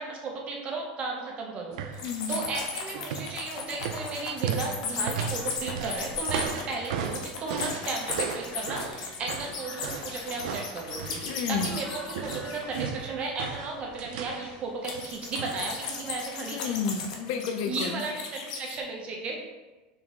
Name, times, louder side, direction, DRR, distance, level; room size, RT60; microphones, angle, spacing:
voice 1, 0.0-11.2 11.5-16.8 17.7-19.4, right 3 dB, 30° right, 0 dB, 0.6 m, -35 dB
sound 1, 1.7-2.1 2.3-2.6 2.9-11.9 12.2-14.5 14.9-15.8 16.0-16.1, right 7 dB, 85° right, 0.4 m, -35 dB
sound 2, 1.9-13.3 14.8-18.8, left 5 dB, 90° left, 0.7 m, -36 dB
voice 2, 2.0-2.4 11.3-11.7 16.5-18.0, left 6 dB, 60° left, 6 dB, 0.3 m, -31 dB
sound 3, 5.2-14.7, equal, 15° left, 1.0 m, -49 dB
3.9 x 3.0 x 3.5 m, 1.1 s
supercardioid pair, 155°, 4 cm